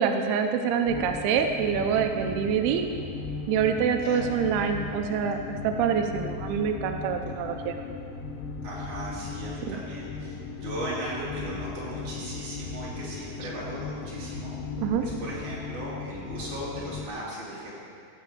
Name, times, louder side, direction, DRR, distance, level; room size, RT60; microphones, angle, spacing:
voice 1, 0.0-2.8 3.5-7.8 9.7-9.8 14.8-15.1, right 7 dB, 90° right, 5 dB, 2.2 m, -26 dB
sound 1, 0.9-17.1, left 5 dB, 75° left, 3.0 m, -37 dB
voice 2, 8.6-17.7, right 1 dB, 45° right, -7 dB, 4.1 m, -37 dB
15.5 x 5.6 x 7.7 m, 2.4 s
omnidirectional pair, 5.4 m